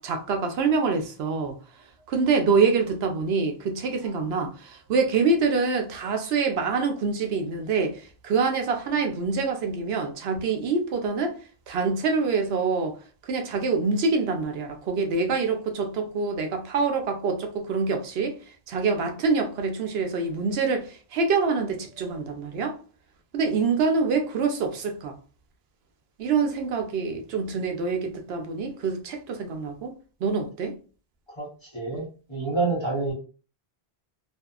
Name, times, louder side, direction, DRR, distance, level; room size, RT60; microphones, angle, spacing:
voice 1, 0.0-1.6 2.1-11.3 11.7-12.9 13.2-18.4 18.7-22.8 23.3-25.1 26.2-29.9 30.2-30.7, right 4 dB, 80° right, 0.8 m, -25 dB
voice 2, 31.7-33.1, right 3 dB, 30° left, 0.9 m, -27 dB
2.6 x 2.4 x 2.3 m
omnidirectional pair, 1.0 m